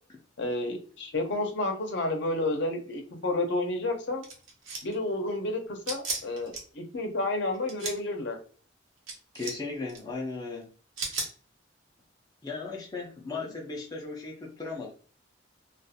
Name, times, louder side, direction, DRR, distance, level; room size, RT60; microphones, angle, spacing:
voice 1, 0.4-4.2 4.8-8.4 13.3-13.5, left 2 dB, 65° left, 3 dB, 0.6 m, -31 dB
sound 1, 4.2-4.9 5.8-6.6 7.5-8.0 9.1-9.6 9.9-10.0 11.0-11.3, right 3 dB, 90° right, 0.9 m, -34 dB
voice 2, 9.3-10.7 12.4-14.9, left 3 dB, 20° left, -1 dB, 0.4 m, -36 dB
2.4 x 2.3 x 2.6 m, 0.41 s
head